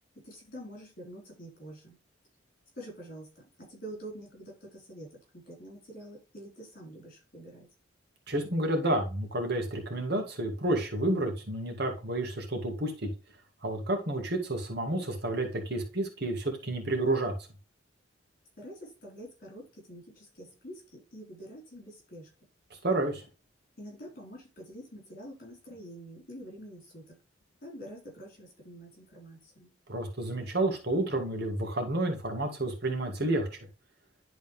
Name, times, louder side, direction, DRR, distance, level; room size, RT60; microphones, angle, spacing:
voice 1, 0.1-2.0 2.7-7.7 18.6-22.3 23.8-27.2 27.6-29.7, equal, 45° left, -1 dB, 4.3 m, -46 dB
voice 2, 8.3-13.1 13.6-17.3 22.8-23.2 29.9-33.5, right 1 dB, 55° right, 3 dB, 2.0 m, -30 dB
11.0 x 4.0 x 3.4 m, 0.31 s
head